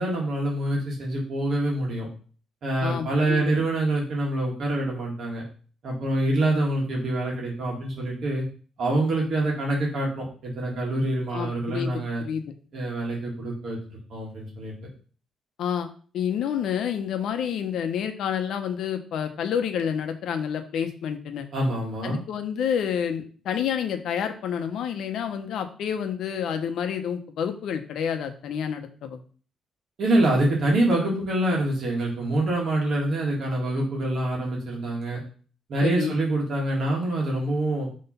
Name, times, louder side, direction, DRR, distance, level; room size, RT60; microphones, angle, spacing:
voice 1, 0.0-2.1 2.6-5.4 5.8-8.4 8.8-12.2 12.7-14.7 21.5-22.2 30.0-35.2 35.7-37.9, right 1 dB, 50° right, -3 dB, 1.9 m, -25 dB
voice 2, 2.8-3.4 11.3-12.4 15.6-15.9 16.1-21.5 22.0-29.2 35.8-36.1, left 8 dB, 70° left, 7 dB, 0.8 m, -29 dB
5.8 x 3.2 x 5.6 m, 0.41 s
cardioid pair, 150°, 0 cm